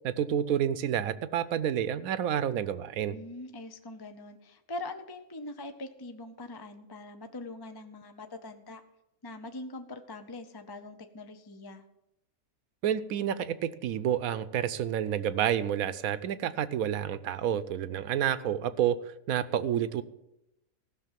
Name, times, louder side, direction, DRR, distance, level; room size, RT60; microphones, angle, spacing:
voice 1, 0.0-3.2 12.8-20.0, right 9 dB, 80° right, 14 dB, 1.1 m, -29 dB
voice 2, 3.1-8.8 9.2-11.8, left 2 dB, 30° left, 7 dB, 0.5 m, -42 dB
15.5 x 6.4 x 7.4 m, 0.87 s
omnidirectional pair, 1.5 m